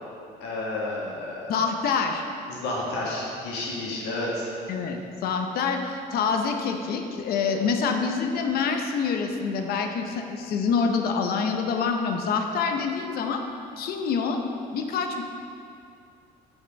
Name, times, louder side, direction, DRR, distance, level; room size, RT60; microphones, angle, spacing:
voice 1, 0.4-1.5 2.5-4.5, left 2 dB, 90° left, -4 dB, 1.7 m, -31 dB
voice 2, 1.5-2.2 4.7-13.4 13.8-14.4 14.7-15.2, left 5 dB, 65° left, 4 dB, 0.7 m, -26 dB
6.8 x 4.3 x 5.1 m, 2.5 s
cardioid pair, 110°, 17 cm